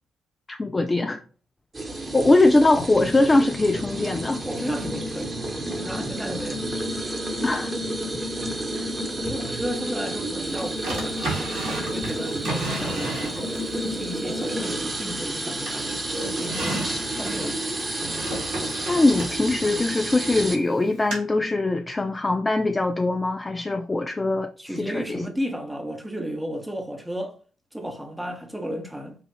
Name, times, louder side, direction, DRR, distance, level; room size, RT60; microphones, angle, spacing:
voice 1, 0.5-1.2 2.1-4.4 7.4-7.7 8.7-8.9 18.9-24.5 24.8-25.2, left 2 dB, 20° left, 0.4 m, -22 dB
sound 1, 1.7-20.6, right 1 dB, 25° right, 1.1 m, -30 dB
voice 2, 4.3-6.6 9.2-13.1 13.7-16.1 16.4-17.7 24.6-27.4 27.7-29.2, equal, 5° right, 0.9 m, -33 dB
Drawer open or close, 10.8-13.7 14.2-15.3 15.7-20.4 21.1-21.2, right 2 dB, 70° right, 1.7 m, -33 dB
5.6 x 2.4 x 3.4 m
figure-of-eight pair, 40°, 0 cm